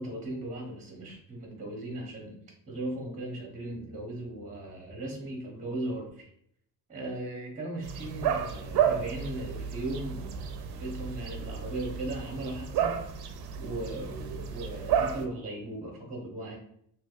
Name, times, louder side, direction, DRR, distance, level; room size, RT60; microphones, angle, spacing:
voice 1, 0.0-2.4 2.7-6.3 6.9-12.9 13.6-16.6, right 1 dB, 20° right, -1 dB, 0.8 m, -37 dB
sound 1, 7.8-15.2, right 8 dB, 65° right, 0.5 m, -32 dB
3.3 x 2.8 x 2.3 m, 0.70 s
cardioid pair, 115°, 41 cm